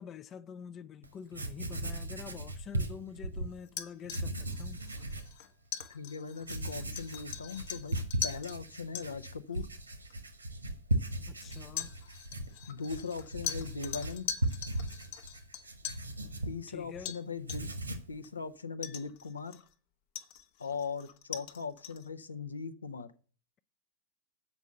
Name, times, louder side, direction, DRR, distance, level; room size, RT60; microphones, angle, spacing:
voice 1, 0.0-4.8 11.3-11.9 16.7-17.2, left 7 dB, 30° left, 0.4 m, -46 dB
Writing, 1.0-1.1 1.3-3.5 4.0-5.3 5.8-5.9 6.4-17.0 17.3-18.2, right 1 dB, 80° right, 1.1 m, -37 dB
sound 1, 3.7-8.6 8.9-9.1 10.1-10.2 11.5-16.1 17.0-17.2 17.5-17.8 18.2-18.3 18.8-19.7 20.1-22.1, left 9 dB, 50° left, 0.8 m, -41 dB
voice 2, 5.9-8.0 8.2-9.7 12.7-14.3 16.4-17.7 18.1-19.6 20.6-23.1, left 5 dB, 75° left, 0.6 m, -39 dB
8.2 x 5.5 x 6.4 m
figure-of-eight pair, 90°, 0 cm